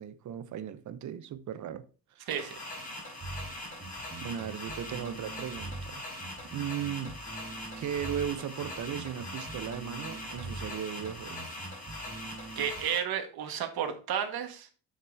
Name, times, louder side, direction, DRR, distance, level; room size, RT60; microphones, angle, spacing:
voice 1, 0.0-1.8 2.1-2.3 4.2-6.1 6.5-7.3 7.8-11.6, right 9 dB, 55° right, 0.8 m, -37 dB
sound 1, 2.3-13.0, left 1 dB, 20° left, 4.3 m, -42 dB
sound 2, 3.2-12.8, right 3 dB, 20° right, 1.8 m, -44 dB
voice 2, 12.5-14.7, right 9 dB, 85° right, 1.7 m, -32 dB
8.2 x 7.4 x 2.7 m
cardioid pair, 175°, 36 cm